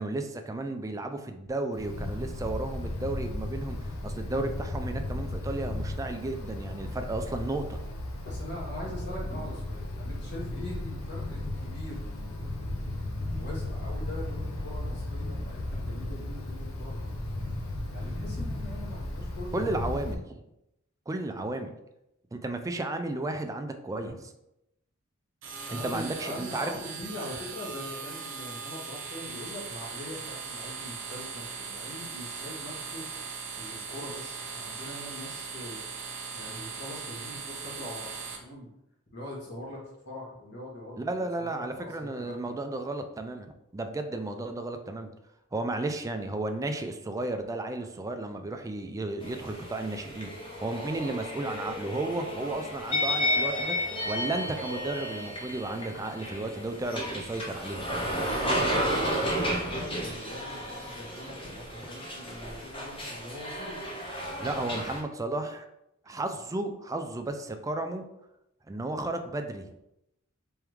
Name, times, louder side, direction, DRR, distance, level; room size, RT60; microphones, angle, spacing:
voice 1, 0.0-3.8 4.0-7.8 9.3-9.5 19.5-20.4 21.1-21.7 22.3-24.1 25.7-26.7 41.0-43.5 43.7-45.1 45.5-50.3 50.6-53.8 54.1-57.8 64.4-65.7 66.1-68.1 68.7-69.7, right 2 dB, 15° right, 6 dB, 0.3 m, -33 dB
Wind, 1.7-20.1, left 1 dB, 85° left, 0.7 m, -35 dB
voice 2, 8.2-17.5 17.9-19.7 23.4-23.6 25.7-33.1 33.6-35.8 36.3-38.7 39.1-39.8 40.0-42.5 58.5-63.8, left 1 dB, 55° left, -4 dB, 1.4 m, -42 dB
sound 1, 25.4-38.4, right 5 dB, 65° right, 0.7 m, -39 dB
sound 2, 49.2-65.0, equal, 25° left, 0.8 m, -32 dB
3.5 x 3.4 x 3.1 m, 0.85 s
head